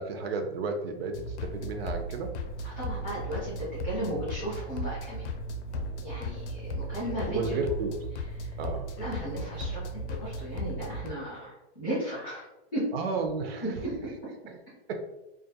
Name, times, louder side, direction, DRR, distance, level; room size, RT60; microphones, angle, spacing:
voice 1, 0.0-2.3 7.3-7.9 8.6-8.9 12.9-13.7 14.5-14.6 14.9-15.0, right 3 dB, 60° right, 5 dB, 0.4 m, -32 dB
sound 1, 1.1-11.1, equal, 90° left, 0.5 m, -36 dB
voice 2, 2.6-5.3 6.0-7.6 8.4-8.5 9.0-9.8 10.1-12.4 12.7-12.8 13.6-13.9, right 1 dB, 10° left, -16 dB, 0.3 m, -35 dB
2.3 x 2.2 x 2.7 m, 0.94 s
supercardioid pair, 180°, 34 cm